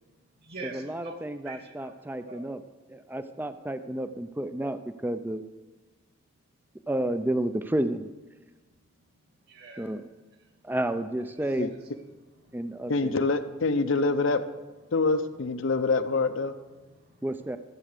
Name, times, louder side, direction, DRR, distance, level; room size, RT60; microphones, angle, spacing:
voice 1, 0.1-2.5 9.5-9.9 10.4-10.6 12.4-12.9 16.9-17.3, right 3 dB, 50° right, 3 dB, 2.1 m, -46 dB
voice 2, 0.6-2.6 2.9-5.4 6.9-8.1 9.8-10.0 10.6-11.7 12.5-13.1 17.2-17.6, right 1 dB, 10° right, 10 dB, 0.4 m, -31 dB
voice 3, 12.9-14.4 14.9-16.5, left 3 dB, 65° left, 9 dB, 0.7 m, -25 dB
13.5 x 7.7 x 6.6 m, 1.2 s
head